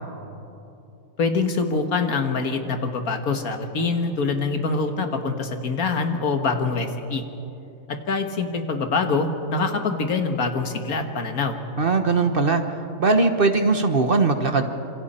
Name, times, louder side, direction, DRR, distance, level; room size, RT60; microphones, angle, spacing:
voice 1, 1.2-7.2 7.9-11.6, left 4 dB, 80° left, 6 dB, 2.0 m, -24 dB
voice 2, 11.8-12.6 13.0-14.6, right 3 dB, 40° right, 7 dB, 1.3 m, -20 dB
27.0 x 26.5 x 4.4 m, 2.9 s
omnidirectional pair, 1.5 m